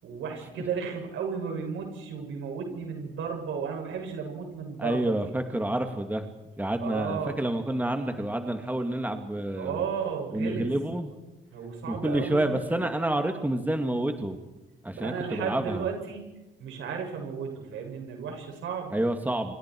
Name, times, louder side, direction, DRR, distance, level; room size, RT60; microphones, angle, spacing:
voice 1, 0.0-5.1 6.8-7.3 9.6-10.7 11.5-12.4 14.9-16.2 16.6-18.9, right 6 dB, 80° right, 2 dB, 7.2 m, -34 dB
voice 2, 4.8-6.3 6.6-9.8 10.3-11.1 11.9-14.4 14.8-15.9 18.9-19.6, right 1 dB, 10° right, 6 dB, 2.3 m, -28 dB
28.0 x 27.0 x 4.7 m, 1.1 s
cardioid pair, 90°, 20 cm